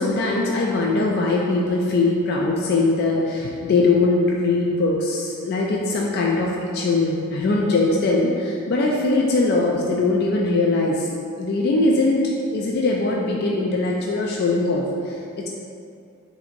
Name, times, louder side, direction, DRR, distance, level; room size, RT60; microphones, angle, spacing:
voice 1, 0.0-11.1 11.4-12.2 12.5-15.5, left 2 dB, 50° left, -2 dB, 0.3 m, -21 dB
5.7 x 2.6 x 2.5 m, 2.5 s
head